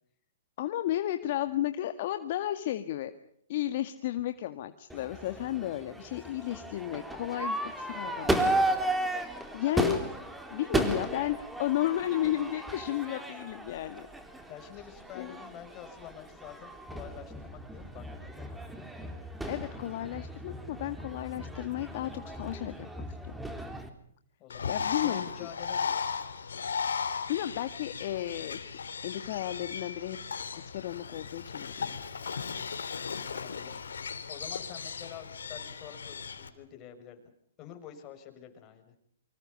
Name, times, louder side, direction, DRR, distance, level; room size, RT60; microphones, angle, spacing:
voice 1, 0.6-3.1 3.5-8.6 9.5-10.0 10.5-14.1 15.2-15.3 19.5-22.9 23.3-23.4 24.7-25.5 27.3-28.6 29.0-30.2 30.5-32.0, left 13 dB, 55° left, 9 dB, 1.8 m, -33 dB
Crowd / Fireworks, 4.9-23.9, right 1 dB, 5° right, 3.6 m, -35 dB
voice 2, 14.5-18.6 24.4-26.1 33.3-33.8 34.3-37.2 37.6-38.9, left 10 dB, 30° left, 6 dB, 6.6 m, -48 dB
Bird, 24.5-36.5, left 6 dB, 80° left, 3.4 m, -36 dB
29.0 x 25.5 x 5.4 m, 0.65 s
hypercardioid pair, 130°, 0 cm